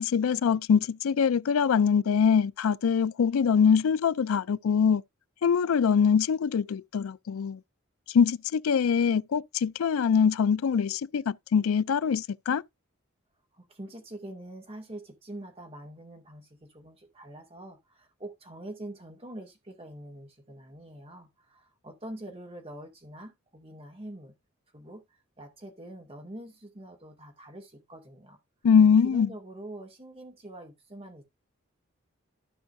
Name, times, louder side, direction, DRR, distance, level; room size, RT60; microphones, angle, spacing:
voice 1, 0.0-5.0 5.4-7.6 8.1-12.6 28.6-29.3, left 6 dB, 80° left, 0.4 m, -23 dB
voice 2, 13.5-24.3 24.7-25.0 25.4-28.4 29.0-31.2, right 1 dB, 30° right, 2.3 m, -44 dB
14.0 x 5.5 x 2.6 m
head